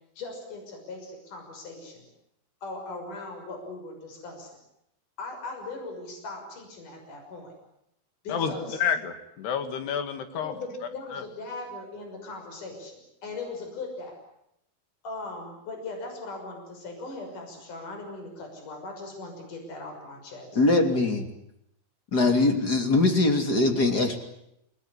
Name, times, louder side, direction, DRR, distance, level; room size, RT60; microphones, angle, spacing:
voice 1, 0.2-2.1 2.6-4.6 5.2-7.5 8.2-8.8 10.3-14.2 15.0-20.6, left 3 dB, 50° left, 3 dB, 7.6 m, -39 dB
voice 2, 8.3-10.5 11.1-11.2, left 7 dB, 85° left, 9 dB, 4.3 m, -29 dB
voice 3, 20.5-21.3 22.1-24.2, left 2 dB, 25° left, 6 dB, 2.9 m, -22 dB
28.5 x 19.5 x 9.9 m, 0.80 s
omnidirectional pair, 4.6 m